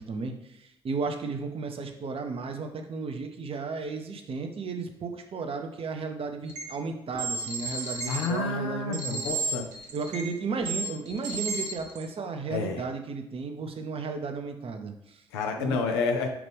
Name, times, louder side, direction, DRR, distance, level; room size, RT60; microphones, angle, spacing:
voice 1, 0.0-9.2 9.9-15.2 15.6-15.8, right 4 dB, 45° right, 5 dB, 0.7 m, -34 dB
sound 1, 6.5-6.6 7.1-8.2 8.9-10.3 10.6-12.0, right 3 dB, 75° right, 1.0 m, -32 dB
voice 2, 8.1-9.6 12.5-12.8 15.3-16.3, left 4 dB, 85° left, 4 dB, 0.6 m, -29 dB
5.8 x 2.5 x 3.4 m, 0.82 s
hypercardioid pair, 45°, 13 cm